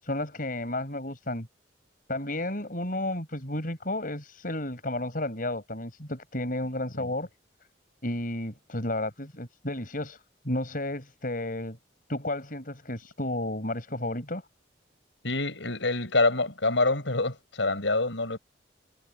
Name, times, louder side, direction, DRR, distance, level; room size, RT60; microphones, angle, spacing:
voice 1, 0.0-1.5 2.1-7.3 8.0-10.2 10.4-11.8 12.1-14.4, left 1 dB, 50° left, 6.6 m, -32 dB
voice 2, 15.2-18.4, left 2 dB, 80° left, 6.0 m, -26 dB
head